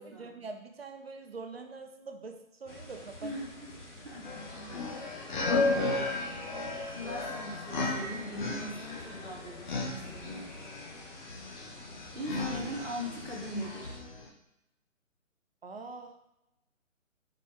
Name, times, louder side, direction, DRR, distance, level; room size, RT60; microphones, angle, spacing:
voice 1, 0.0-3.4 15.6-16.2, right 3 dB, 45° right, 5 dB, 0.9 m, -44 dB
sound 1, 2.7-14.0, left 1 dB, 60° left, 1.9 m, -48 dB
voice 2, 3.2-4.4 4.7-6.1 6.8-10.5 12.1-13.9, equal, 5° right, -13 dB, 0.6 m, -41 dB
sound 2, 4.2-14.3, left 3 dB, 35° left, 1.0 m, -34 dB
5.2 x 5.1 x 4.4 m, 0.90 s
figure-of-eight pair, 140°, 40 cm